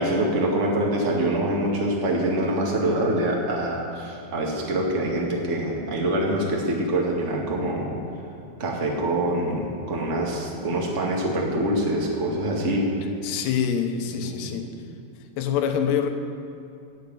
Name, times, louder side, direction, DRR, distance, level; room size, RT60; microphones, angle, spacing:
voice 1, 0.0-7.9 8.6-12.9 14.2-14.5, right 1 dB, 30° right, -2 dB, 1.4 m, -25 dB
voice 2, 13.2-14.7 15.4-16.1, left 8 dB, 85° left, 5 dB, 3.2 m, -25 dB
16.0 x 6.7 x 9.6 m, 2.6 s
omnidirectional pair, 4.7 m